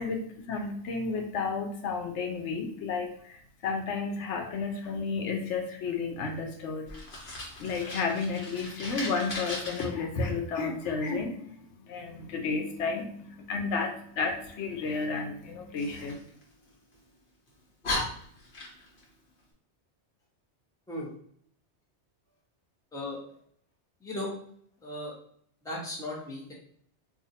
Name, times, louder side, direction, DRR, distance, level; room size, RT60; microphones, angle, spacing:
voice 1, 0.0-7.0 7.6-16.1, left 4 dB, 85° left, 3 dB, 1.0 m, -32 dB
Fire, 6.9-9.8 15.8-17.0 17.5-17.6 17.8-19.0, left 2 dB, 50° left, 1.1 m, -37 dB
voice 2, 24.8-25.1 25.6-26.5, left 1 dB, 5° left, -4 dB, 0.7 m, -36 dB
2.6 x 2.4 x 4.0 m, 0.63 s
omnidirectional pair, 1.2 m